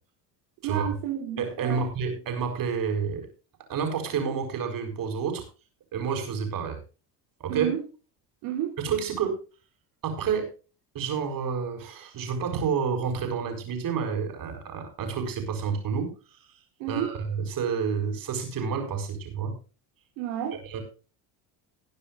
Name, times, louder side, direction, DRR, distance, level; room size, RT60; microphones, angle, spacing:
voice 1, 0.6-1.8 7.5-7.8 8.4-8.7 16.8-17.1 20.2-20.6, right 10 dB, 75° right, 2 dB, 3.7 m, -30 dB
voice 2, 1.4-3.3 3.7-5.4 5.9-6.8 7.4-7.7 8.8-9.4 10.0-10.5 10.9-16.1 16.9-19.5 20.6-20.8, right 6 dB, 45° right, 5 dB, 6.4 m, -29 dB
21.0 x 9.9 x 2.6 m, 0.34 s
supercardioid pair, 120°, 46 cm